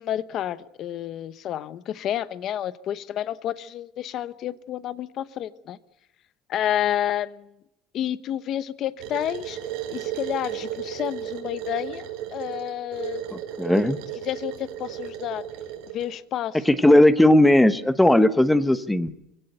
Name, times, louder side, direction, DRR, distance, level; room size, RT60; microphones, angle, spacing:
voice 1, 0.0-5.8 6.5-7.5 7.9-9.6 9.9-12.1 12.3-13.2 14.2-15.4 15.9-16.6, left 11 dB, 40° left, 15 dB, 0.9 m, -30 dB
sound 1, 9.0-16.1, right 11 dB, 65° right, 4.5 m, -34 dB
voice 2, 13.3-14.0 16.7-19.1, left 1 dB, 5° left, 13 dB, 0.9 m, -17 dB
24.0 x 17.0 x 8.0 m, 0.85 s
cardioid pair, 170°, 0 cm